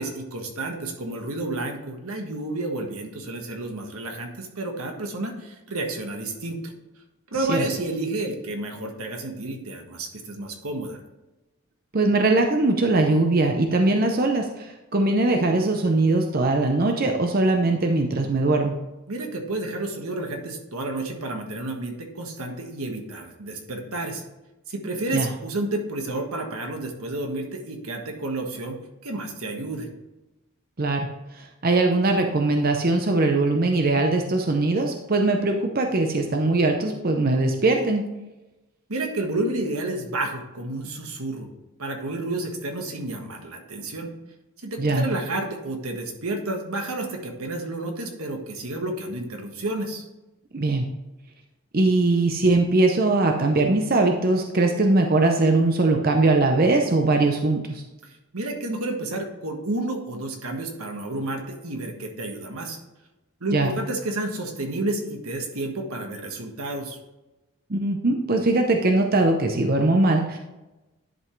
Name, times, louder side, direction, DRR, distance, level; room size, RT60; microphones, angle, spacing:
voice 1, 0.0-6.7 7.3-11.0 19.1-24.2 24.7-29.9 38.9-41.5 41.8-44.1 44.6-50.0 58.0-62.8 63.4-67.0, right 2 dB, 85° right, 3 dB, 1.5 m, -30 dB
voice 2, 11.9-18.7 25.1-25.3 30.8-31.1 31.4-38.0 44.8-45.1 50.5-50.9 51.7-57.8 63.5-63.7 67.7-70.4, right 2 dB, 45° right, 4 dB, 0.7 m, -21 dB
11.0 x 5.4 x 3.2 m, 1.0 s
head